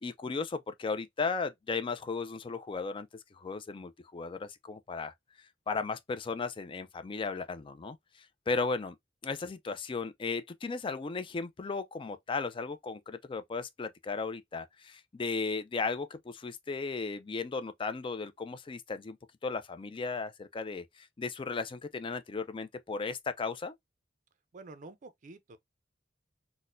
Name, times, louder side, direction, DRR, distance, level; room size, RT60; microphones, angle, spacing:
voice 1, 0.0-5.1 5.7-9.0 9.2-19.2 19.4-23.7, left 4 dB, 30° left, 0.4 m, -36 dB
voice 2, 24.5-25.6, right 3 dB, 40° right, 0.5 m, -48 dB
4.0 x 2.1 x 2.4 m
head